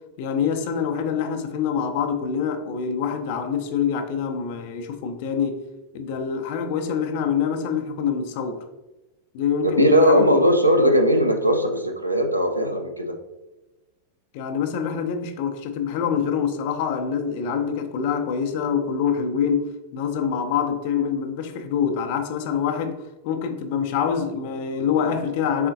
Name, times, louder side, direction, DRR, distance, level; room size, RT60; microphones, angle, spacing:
voice 1, 0.2-5.6 5.9-8.7 9.3-10.4 10.8-11.0 14.3-25.7, left 7 dB, 50° left, 0.5 m, -25 dB
voice 2, 9.8-13.1, equal, 85° right, 0.5 m, -19 dB
4.1 x 3.7 x 2.6 m
figure-of-eight pair, 90°, 0 cm